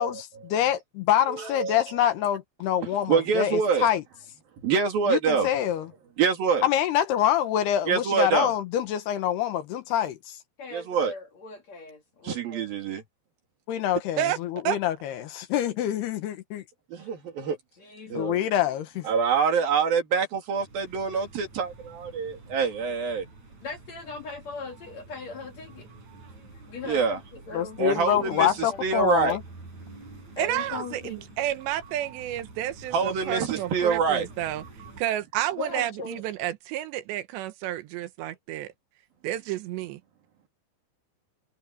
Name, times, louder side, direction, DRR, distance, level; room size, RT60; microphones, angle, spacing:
voice 1, 0.5-4.0 5.1-5.9 6.6-10.3 13.7-16.6 18.1-19.1 27.5-29.4, left 11 dB, 75° left, 3.1 m, -26 dB
voice 2, 1.3-1.8 3.1-3.9 4.6-5.5 6.2-6.6 7.9-8.5 10.7-11.1 12.2-13.0 16.9-17.6 18.1-18.4 19.1-23.3 26.8-27.2 27.8-29.4 32.9-34.3, right 6 dB, 60° right, 4.2 m, -25 dB
voice 3, 10.6-12.7 15.7-15.8 17.0-17.1 17.8-18.8 23.6-25.9 26.7-28.8 30.4-31.3 35.6-36.2, left 3 dB, 45° left, 2.8 m, -39 dB
sound 1, 20.5-35.0, right 3 dB, 40° right, 9.0 m, -48 dB
voice 4, 30.4-34.6 35.0-38.7 39.2-40.0, right 13 dB, 80° right, 3.3 m, -30 dB
omnidirectional pair, 5.0 m